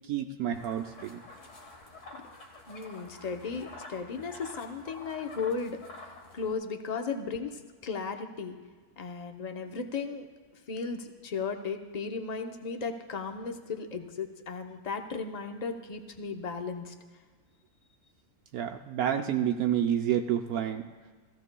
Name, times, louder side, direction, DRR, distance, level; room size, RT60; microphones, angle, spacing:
voice 1, 0.1-1.2 18.5-20.8, right 9 dB, 75° right, 4 dB, 1.0 m, -29 dB
sound 1, 0.5-6.5, left 2 dB, 55° left, 1.7 m, -48 dB
voice 2, 2.7-8.6 9.0-10.3 10.7-16.9, left 5 dB, 40° left, 5 dB, 0.6 m, -36 dB
17.0 x 15.0 x 2.2 m, 1.5 s
omnidirectional pair, 1.6 m